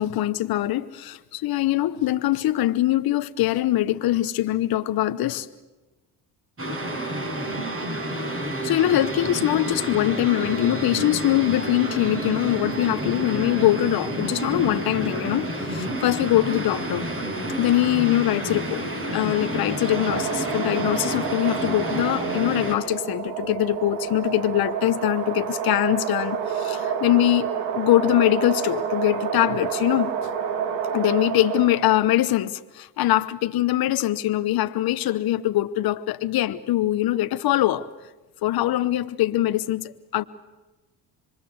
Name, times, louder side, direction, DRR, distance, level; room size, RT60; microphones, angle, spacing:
voice 1, 0.0-5.5 8.6-17.1 17.6-18.9 19.1-27.5 27.7-30.1 30.9-37.9 38.4-40.2, left 14 dB, 60° left, 1.0 m, -23 dB
sound 1, 6.6-22.8, right 1 dB, 30° right, 6.1 m, -29 dB
sound 2, 19.7-32.1, right 7 dB, 90° right, 2.2 m, -29 dB
26.5 x 22.5 x 7.9 m
supercardioid pair, 65°, 41 cm